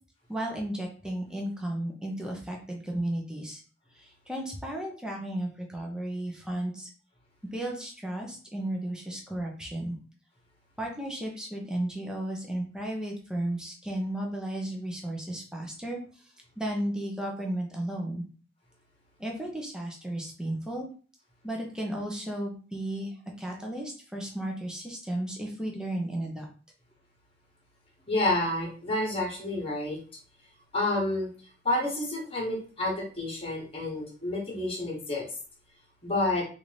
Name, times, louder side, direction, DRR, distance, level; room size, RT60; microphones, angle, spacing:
voice 1, 0.3-3.6 3.9-6.9 7.5-10.0 10.8-16.0 16.6-18.3 19.2-20.9 21.4-26.5, right 1 dB, 5° right, -1 dB, 0.7 m, -34 dB
voice 2, 28.1-30.0 30.7-31.3 31.6-35.3 36.0-36.4, left 1 dB, 30° left, -1 dB, 1.2 m, -29 dB
3.6 x 2.6 x 3.2 m, 0.40 s
head